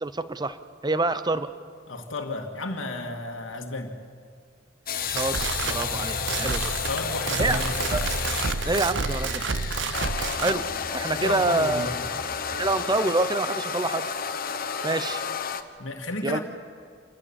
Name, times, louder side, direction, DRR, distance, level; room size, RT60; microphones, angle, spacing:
voice 1, 0.0-0.6 0.8-1.5 5.1-6.7 7.4-7.6 7.9-8.0 8.7-9.4 10.4-10.6 10.9-11.9 12.6-14.1 14.8-15.2 16.2-16.4, right 2 dB, 20° right, 13 dB, 0.7 m, -26 dB
voice 2, 1.9-3.9 6.9-7.9 11.1-12.0 15.8-16.4, left 2 dB, 80° left, 2 dB, 1.9 m, -32 dB
sound 1, 4.9-15.6, left 7 dB, 50° left, 1.1 m, -31 dB
sound 2, 4.9-10.6, right 4 dB, 65° right, 0.8 m, -29 dB
sound 3, 7.3-12.7, equal, 40° right, 4.9 m, -44 dB
27.0 x 19.0 x 7.2 m, 2.3 s
head